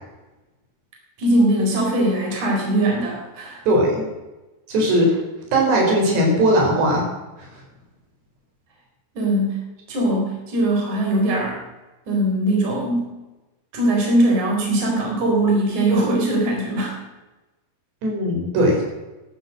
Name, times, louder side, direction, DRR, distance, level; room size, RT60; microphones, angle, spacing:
voice 1, 1.2-3.6 9.2-9.6 9.9-11.6 12.1-13.1 13.7-17.0, right 1 dB, 45° right, -1 dB, 5.4 m, -20 dB
voice 2, 3.7-4.0 4.7-5.2 5.5-7.1 18.0-18.8, right 1 dB, 85° right, 0 dB, 6.5 m, -18 dB
16.5 x 11.5 x 7.6 m, 1.1 s
omnidirectional pair, 4.8 m